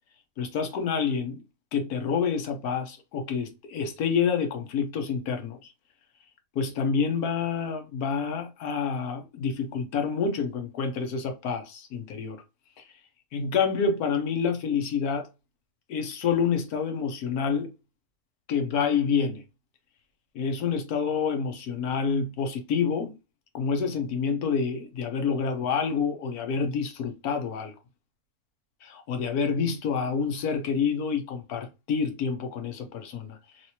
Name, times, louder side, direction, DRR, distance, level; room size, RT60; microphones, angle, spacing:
voice 1, 0.4-1.4 1.7-5.7 6.5-12.4 13.3-15.3 15.9-17.7 18.5-19.4 20.3-23.1 23.5-27.7 28.8-33.4, left 6 dB, 80° left, 1.3 m, -28 dB
3.1 x 3.0 x 2.8 m
omnidirectional pair, 1.6 m